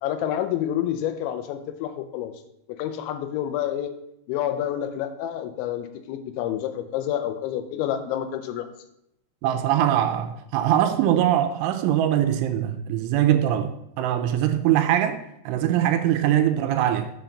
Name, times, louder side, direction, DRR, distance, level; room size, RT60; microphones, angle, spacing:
voice 1, 0.0-2.3 2.7-3.9 4.3-8.7, left 11 dB, 80° left, 2.8 m, -28 dB
voice 2, 9.4-15.2 15.5-17.1, right 11 dB, 80° right, 3.0 m, -22 dB
9.1 x 5.2 x 7.0 m
omnidirectional pair, 5.7 m